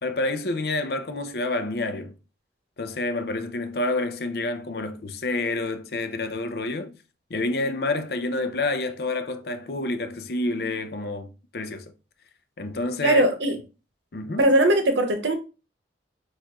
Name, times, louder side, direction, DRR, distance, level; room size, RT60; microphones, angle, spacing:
voice 1, 0.0-2.2 2.8-6.9 7.3-11.9 12.6-13.2 14.1-14.5, left 2 dB, 60° left, 0.6 m, -28 dB
voice 2, 13.0-13.6 14.4-15.3, right 1 dB, 90° right, 0.8 m, -20 dB
6.4 x 2.5 x 2.9 m
head